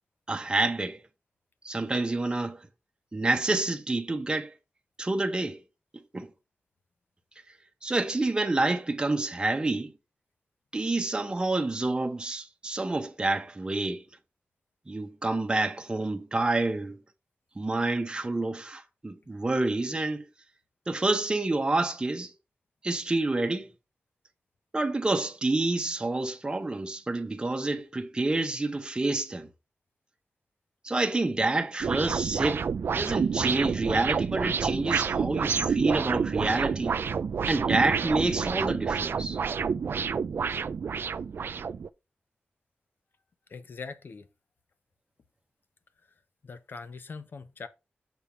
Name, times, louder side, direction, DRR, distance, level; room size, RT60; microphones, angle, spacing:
voice 1, 0.3-1.0 1.6-2.6 3.1-4.5 5.0-5.6 6.1-6.3 7.8-9.9 10.7-14.1 14.9-17.0 17.6-20.2 20.9-22.3 22.8-23.7 24.7-29.5 30.8-37.0 37.4-39.4, right 2 dB, 20° right, 0.9 m, -28 dB
sound 1, 31.8-41.9, right 6 dB, 65° right, 0.4 m, -29 dB
voice 2, 43.5-44.3 46.4-47.7, left 4 dB, 55° left, 0.9 m, -41 dB
7.0 x 3.5 x 5.8 m
wide cardioid pair, 145°, 4 cm